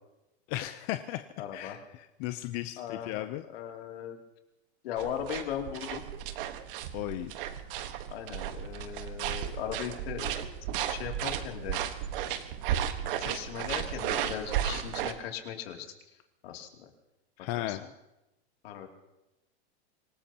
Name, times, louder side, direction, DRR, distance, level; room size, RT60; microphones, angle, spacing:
voice 1, 0.5-1.2 1.5-3.4 6.9-7.3 17.4-17.8, left 15 dB, 40° left, 9 dB, 0.6 m, -35 dB
voice 2, 1.4-1.8 2.8-4.2 4.8-6.0 8.1-10.4 10.9-11.8 13.0-15.9 16.4-16.9 17.5-17.8 18.6-18.9, left 9 dB, 65° left, 2 dB, 2.8 m, -38 dB
sound 1, 5.0-15.1, right 10 dB, 55° right, 1.4 m, -34 dB
26.0 x 18.5 x 2.9 m, 0.94 s
supercardioid pair, 145°, 32 cm